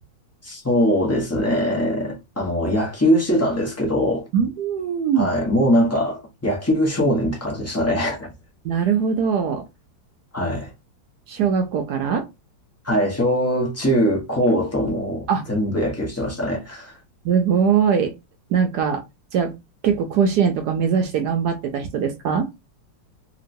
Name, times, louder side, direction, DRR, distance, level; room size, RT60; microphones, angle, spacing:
voice 1, 0.4-4.2 5.2-8.3 10.3-10.7 12.8-16.9, equal, 20° left, 0.4 m, -21 dB
voice 2, 4.3-5.3 8.6-9.7 11.3-12.3 15.3-15.4 17.2-18.1 18.5-19.0 19.3-19.5 19.8-22.5, right 7 dB, 75° right, 1.0 m, -21 dB
2.9 x 2.9 x 2.6 m
omnidirectional pair, 2.0 m